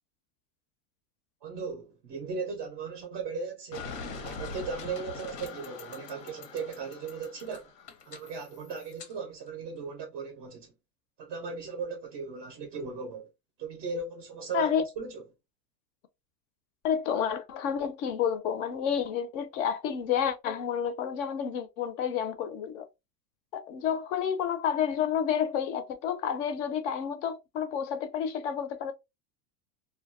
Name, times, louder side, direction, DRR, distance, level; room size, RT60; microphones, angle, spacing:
voice 1, 1.4-3.9 4.2-7.7 8.1-10.7 11.2-13.3 13.6-15.2, right 5 dB, 30° right, 0.4 m, -37 dB
sound 1, 3.7-9.1, left 4 dB, 85° left, 1.0 m, -43 dB
voice 2, 14.5-14.8 16.8-22.9 23.5-28.9, left 8 dB, 55° left, 0.6 m, -30 dB
2.2 x 2.2 x 2.5 m
supercardioid pair, 160°, 47 cm